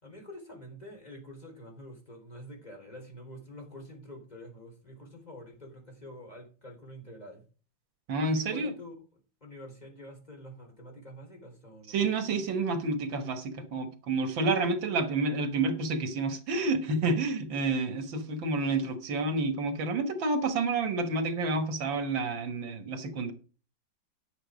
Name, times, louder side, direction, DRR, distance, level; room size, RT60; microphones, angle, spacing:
voice 1, 0.0-7.4 8.3-9.0 9.4-12.0, left 1 dB, 20° left, 4.0 m, -47 dB
voice 2, 8.1-8.7 11.9-23.3, right 3 dB, 80° right, 2.1 m, -29 dB
11.5 x 7.0 x 5.1 m
omnidirectional pair, 2.0 m